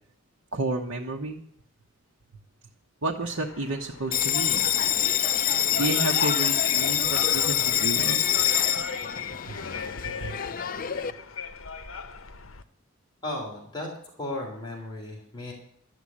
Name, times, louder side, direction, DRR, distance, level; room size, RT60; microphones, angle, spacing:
voice 1, 0.5-1.4 3.0-4.7 5.7-8.2 9.5-9.6 10.0-10.4, right 2 dB, 85° right, -1 dB, 1.2 m, -31 dB
sound 1, 3.2-12.6, left 6 dB, 75° left, 0.9 m, -40 dB
Bell, 4.1-11.1, left 10 dB, 45° left, 0.5 m, -25 dB
voice 2, 13.2-13.9 14.2-15.5, left 1 dB, 20° left, -2 dB, 3.3 m, -35 dB
12.5 x 8.0 x 8.7 m, 0.68 s
head